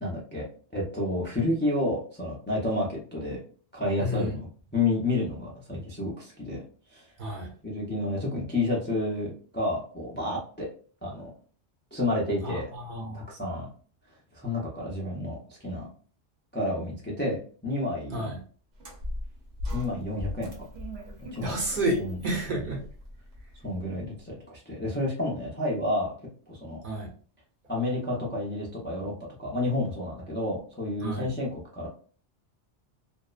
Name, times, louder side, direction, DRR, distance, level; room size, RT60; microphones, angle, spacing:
voice 1, 0.0-0.4 0.7-3.4 3.7-4.4 4.7-6.6 6.9-7.0 7.6-10.7 11.0-11.3 11.9-12.7 13.1-13.7 14.3-15.8 16.5-17.4 17.6-18.3 19.7-20.5 21.3-21.6 22.0-22.2 23.6-26.1 26.5-26.8 27.7-31.9, left 2 dB, 15° left, -4 dB, 0.4 m, -30 dB
voice 2, 4.0-4.3 7.2-7.5 12.4-13.3 18.1-18.4 21.4-22.8 26.8-27.1 31.0-31.3, right 1 dB, 55° right, 1 dB, 0.7 m, -30 dB
sound 1, 18.8-24.0, left 1 dB, 70° right, 1.0 m, -39 dB
2.6 x 2.0 x 2.3 m, 0.42 s
omnidirectional pair, 1.2 m